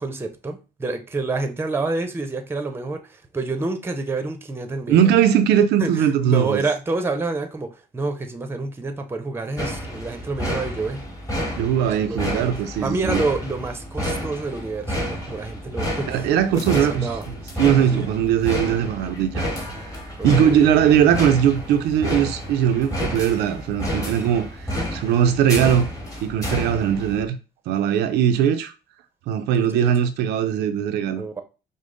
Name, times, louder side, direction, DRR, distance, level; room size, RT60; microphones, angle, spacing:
voice 1, 0.0-5.1 5.8-11.0 12.0-12.5 12.8-16.2 16.5-17.2 17.9-18.1 20.2-20.7 29.5-29.9 31.2-31.4, right 3 dB, 15° right, 0.6 m, -28 dB
voice 2, 4.9-6.6 11.6-13.2 16.1-19.5 20.2-25.9 26.2-27.4 27.7-28.7 29.3-31.2, right 9 dB, 80° right, 0.4 m, -20 dB
sound 1, 9.6-27.3, equal, 20° left, 1.2 m, -30 dB
5.1 x 2.0 x 3.8 m
cardioid pair, 110°, 17 cm